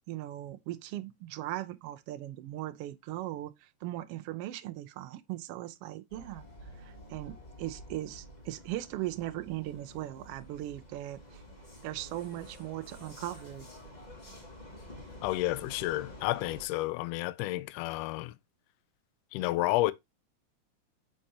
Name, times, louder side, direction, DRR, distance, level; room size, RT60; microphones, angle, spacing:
voice 1, 0.1-6.4 6.8-11.4 11.8-13.7, right 15 dB, 90° right, 1.3 m, -39 dB
Vehicle, 6.1-16.7, left 1 dB, 20° left, 1.4 m, -49 dB
voice 2, 15.2-18.3 19.3-19.9, left 17 dB, 85° left, 1.5 m, -31 dB
6.5 x 5.4 x 2.7 m
omnidirectional pair, 3.4 m